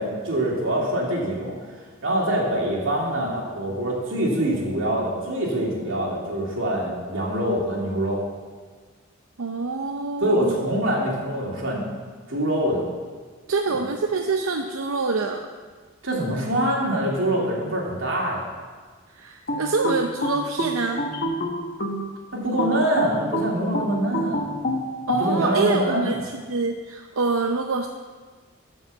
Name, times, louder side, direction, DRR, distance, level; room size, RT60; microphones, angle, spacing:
voice 1, 0.0-1.6 2.0-8.2 10.2-11.8 12.3-12.8 16.0-18.4 22.3-24.5 25.2-26.1, right 1 dB, 70° right, -3 dB, 2.8 m, -24 dB
voice 2, 9.4-10.7 13.5-15.4 19.1-21.0 25.1-27.9, right 3 dB, 90° right, 4 dB, 0.6 m, -26 dB
sound 1, 19.5-22.1 22.6-25.3, equal, 45° left, 1.3 m, -27 dB
12.0 x 5.5 x 7.3 m, 1.5 s
head